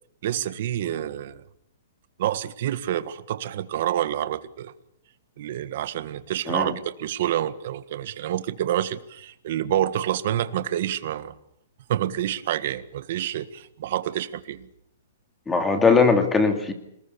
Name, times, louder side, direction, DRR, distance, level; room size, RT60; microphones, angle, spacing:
voice 1, 0.2-1.4 2.2-4.7 5.4-11.3 11.9-14.7, right 11 dB, 45° right, 12 dB, 1.6 m, -28 dB
voice 2, 15.5-16.7, left 4 dB, 10° left, 6 dB, 2.5 m, -20 dB
27.5 x 20.5 x 7.0 m, 0.76 s
hypercardioid pair, 165°, 0 cm